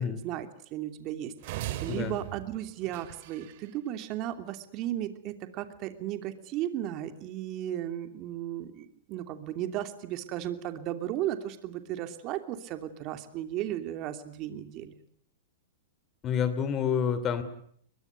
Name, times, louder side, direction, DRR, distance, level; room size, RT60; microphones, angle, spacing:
voice 1, 0.0-14.9, right 12 dB, 40° right, 8 dB, 2.8 m, -35 dB
sound 1, 1.4-3.7, right 14 dB, 55° right, 2.6 m, -39 dB
voice 2, 16.2-17.4, left 7 dB, 25° left, 13 dB, 2.9 m, -28 dB
22.5 x 22.5 x 9.5 m, 0.64 s
hypercardioid pair, 140°, 0 cm